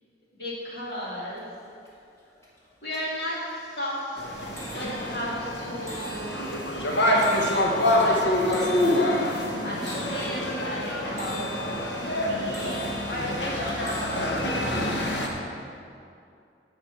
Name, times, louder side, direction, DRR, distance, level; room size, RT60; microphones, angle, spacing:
voice 1, 0.3-1.5 2.8-3.4 3.7-4.3 4.7-6.4 6.8-7.4 8.0-9.3 9.6-11.6 12.2-15.0 15.3-15.5, left 1 dB, 60° left, -6 dB, 2.8 m, -35 dB
sound 1, 0.9-1.0 1.3-1.9 2.3-2.6 2.9-15.3, right 1 dB, 15° left, 1.9 m, -40 dB
sound 2, 4.2-15.3, left 1 dB, 80° left, 1.3 m, -26 dB
11.0 x 4.8 x 7.2 m, 2.5 s
head